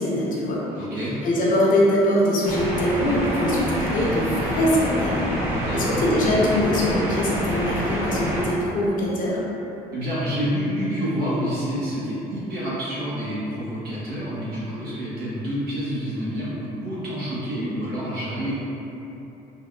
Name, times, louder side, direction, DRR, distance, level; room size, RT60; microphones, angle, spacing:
voice 1, 0.0-0.9 1.2-5.3 5.7-9.4, left 1 dB, 55° left, -5 dB, 0.6 m, -22 dB
voice 2, 0.8-1.2 5.5-6.0 9.9-18.5, equal, 65° right, -9 dB, 1.0 m, -28 dB
sound 1, 2.4-8.5, equal, 15° right, 0.6 m, -27 dB
3.2 x 2.3 x 2.2 m, 3.0 s
cardioid pair, 110°, 17 cm